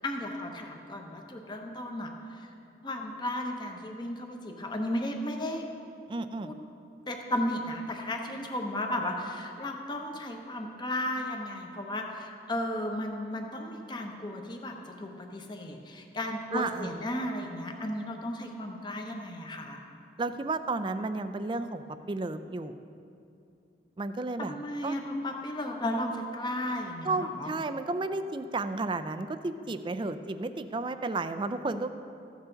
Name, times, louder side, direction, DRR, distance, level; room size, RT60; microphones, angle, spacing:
voice 1, 0.0-2.4 2.8-5.6 6.4-6.5 7.1-19.8 24.4-27.5, left 1 dB, 25° left, 3 dB, 0.9 m, -34 dB
voice 2, 6.1-6.5 16.5-16.9 20.2-22.8 24.0-24.6 24.8-24.9 27.0-31.9, right 3 dB, 25° right, 11 dB, 0.4 m, -32 dB
14.5 x 8.1 x 3.9 m, 2.6 s
head